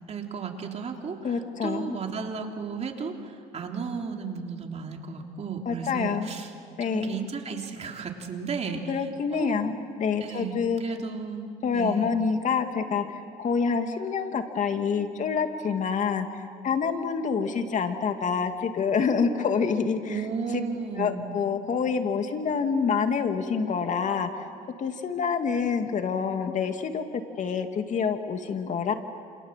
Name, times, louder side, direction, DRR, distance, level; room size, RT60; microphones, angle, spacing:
voice 1, 0.1-6.5 6.8-9.0 9.3-9.5 10.2-12.1 20.1-21.3, right 5 dB, 40° right, 2 dB, 3.3 m, -34 dB
voice 2, 1.2-2.0 5.7-6.3 6.8-7.2 8.9-10.8 11.6-20.3 21.0-24.5 24.8-27.0 27.4-28.9, left 6 dB, 45° left, 6 dB, 2.4 m, -27 dB
28.5 x 27.0 x 7.5 m, 2.3 s
cardioid pair, 110°, 17 cm